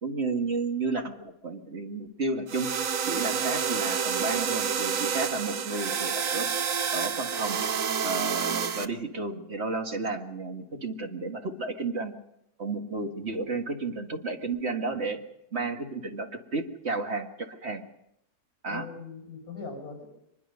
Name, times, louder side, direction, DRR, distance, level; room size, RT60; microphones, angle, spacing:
voice 1, 0.0-2.7 3.1-6.5 6.9-7.6 8.0-12.1 12.6-15.2 15.5-17.8 18.6-18.9, right 3 dB, 40° right, 4 dB, 1.9 m, -32 dB
sound 1, 2.5-8.9, right 7 dB, 55° right, 1.2 m, -29 dB
voice 2, 3.3-3.6 13.0-13.1 18.7-20.2, left 4 dB, 50° left, 2 dB, 6.5 m, -41 dB
23.5 x 21.0 x 5.5 m, 0.81 s
omnidirectional pair, 1.9 m